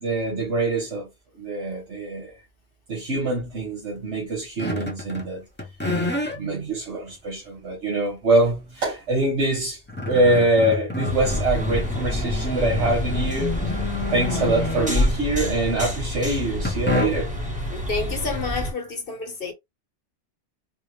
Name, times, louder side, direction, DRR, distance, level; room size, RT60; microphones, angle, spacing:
voice 1, 0.0-1.1 1.4-2.3 2.9-5.4 6.0-9.8 10.1-13.5 14.1-17.3, right 2 dB, 75° right, 1.5 m, -24 dB
sound 1, 4.6-5.3 5.6-6.4 7.1-7.2 9.2-9.3 9.6-15.4 16.6-17.4, left 2 dB, 10° left, 0.6 m, -29 dB
sound 2, 11.1-18.7, left 1 dB, 5° right, 1.0 m, -28 dB
voice 2, 14.2-14.8 17.7-19.5, left 4 dB, 55° left, 1.0 m, -30 dB
4.2 x 2.0 x 3.2 m
omnidirectional pair, 1.2 m